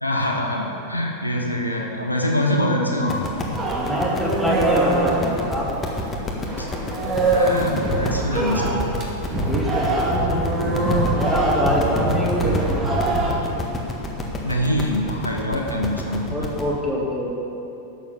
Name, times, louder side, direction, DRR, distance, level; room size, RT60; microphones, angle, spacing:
voice 1, 0.0-3.2 6.6-6.7 7.2-8.8 14.4-16.5, left 1 dB, 85° left, -1 dB, 1.3 m, -24 dB
sound 1, 3.1-16.7, left 2 dB, 15° left, 1.7 m, -30 dB
sound 2, 3.6-6.1 6.5-13.3, right 1 dB, 25° right, 2.0 m, -23 dB
voice 2, 3.7-5.8 9.5-10.5 11.1-12.8 16.3-17.3, equal, ahead, -6 dB, 2.9 m, -24 dB
11.5 x 7.4 x 7.0 m, 2.8 s
figure-of-eight pair, 90°, 0 cm